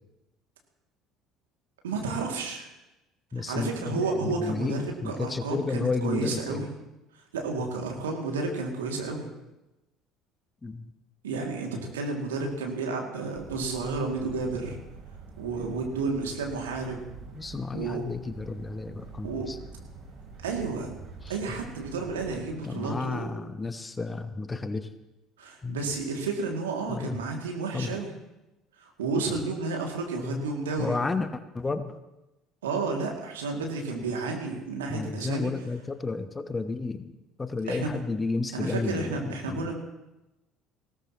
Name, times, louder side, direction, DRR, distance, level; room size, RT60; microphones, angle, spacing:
voice 1, 1.8-2.7 3.3-6.7 7.3-9.3 11.2-14.8 15.4-17.0 17.7-18.0 19.2-19.5 20.4-20.9 21.3-23.3 25.4-28.1 28.8-30.9 32.6-35.5 37.7-37.9 38.5-39.7, right 3 dB, 80° right, 1 dB, 2.4 m, -31 dB
voice 2, 3.3-6.6 10.6-10.9 17.3-19.6 21.2-21.4 22.6-24.9 25.6-25.8 26.9-27.2 27.7-28.0 30.2-30.4 30.8-31.9 34.9-37.1 37.4-39.7, left 3 dB, 20° left, 11 dB, 1.1 m, -32 dB
sound 1, 13.3-22.6, right 4 dB, 50° right, 3.7 m, -46 dB
19.5 x 17.0 x 3.0 m, 0.98 s
figure-of-eight pair, 60°, 0 cm